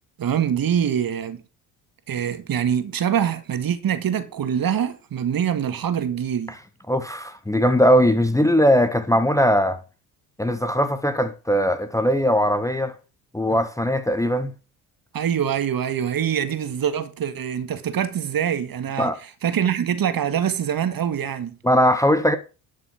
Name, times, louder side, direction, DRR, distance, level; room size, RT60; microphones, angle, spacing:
voice 1, 0.2-1.4 2.1-6.5 15.1-21.6, right 9 dB, 45° right, 1.8 m, -24 dB
voice 2, 6.9-9.8 10.4-12.9 13.3-14.5 19.0-19.2 21.6-22.4, equal, 5° left, 1.1 m, -20 dB
11.5 x 6.2 x 6.0 m
hypercardioid pair, 60°, 49 cm